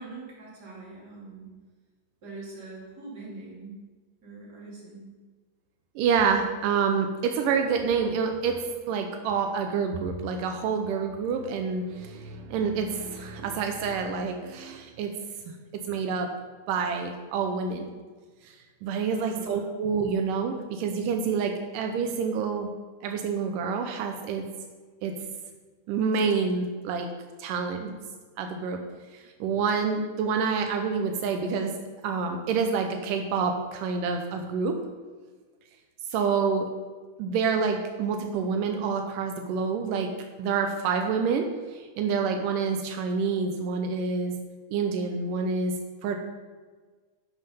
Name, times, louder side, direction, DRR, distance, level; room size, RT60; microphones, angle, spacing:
voice 1, 0.0-1.5 2.2-3.8 4.2-5.1 19.0-19.7, right 3 dB, 30° right, -5 dB, 3.1 m, -43 dB
voice 2, 6.0-15.1 15.9-16.3 16.7-17.9 18.4-18.5 18.8-22.7 23.0-24.5 25.0-25.1 25.9-27.1 27.4-28.0 28.4-28.8 29.1-31.7 32.0-34.8 36.1-36.7 37.2-40.1 40.4-44.4 44.7-45.7 46.0-46.2, right 5 dB, 85° right, 4 dB, 2.4 m, -27 dB
11.0 x 5.5 x 5.6 m, 1.4 s
omnidirectional pair, 3.7 m